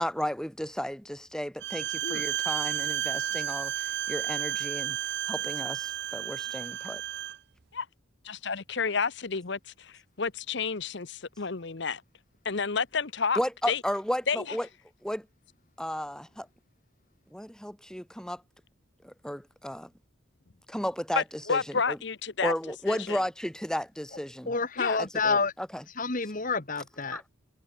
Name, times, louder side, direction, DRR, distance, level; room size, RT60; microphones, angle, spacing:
voice 1, 0.0-5.0 5.3-7.0 13.4-14.7 15.0-15.3 15.8-16.5 17.3-18.4 19.0-19.9 20.7-21.2 21.5-21.6 21.9-22.0 22.4-24.5 25.0-25.8 27.1-27.2, equal, 5° left, 2.5 m, -33 dB
Bowed string instrument, 1.6-7.4, right 11 dB, 55° right, 0.5 m, -32 dB
voice 2, 8.3-12.0 12.4-13.4 13.7-13.8 14.3-14.6 21.2-22.5 22.9-23.2 24.8-25.0, left 5 dB, 55° left, 0.9 m, -30 dB
voice 3, 24.5-25.5 26.0-27.2, left 4 dB, 40° left, 1.5 m, -28 dB
head